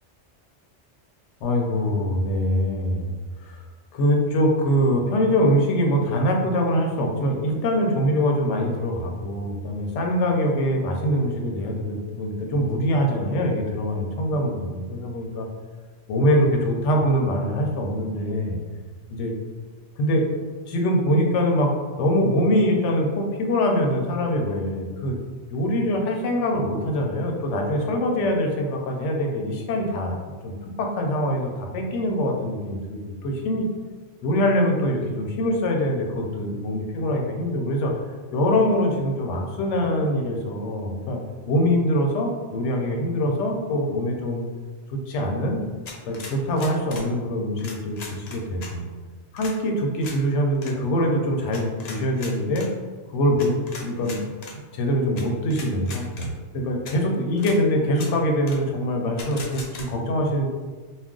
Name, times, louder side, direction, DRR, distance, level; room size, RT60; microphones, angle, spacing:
voice 1, 1.4-3.1 3.4-3.6 3.9-15.5 16.1-18.6 19.1-19.3 20.0-20.2 20.7-21.7 22.0-25.2 25.5-30.1 30.4-33.7 34.2-37.9 38.3-41.2 41.5-44.4 44.9-45.6 46.1-48.8 49.3-52.7 53.1-53.5 53.8-54.2 54.7-60.5, equal, 85° left, 1 dB, 0.9 m, -23 dB
sound 1, 45.9-47.1 47.6-48.7 49.4-49.6 50.0-50.2 50.6-50.7 51.5-52.7 53.4-54.6 55.2-55.3 55.5-56.3 56.9-57.0 57.4-57.6 57.9-58.1 58.5-58.6 59.2-59.9, left 4 dB, 60° left, 0.4 m, -39 dB
2.4 x 2.2 x 3.6 m, 1.4 s
omnidirectional pair, 1.2 m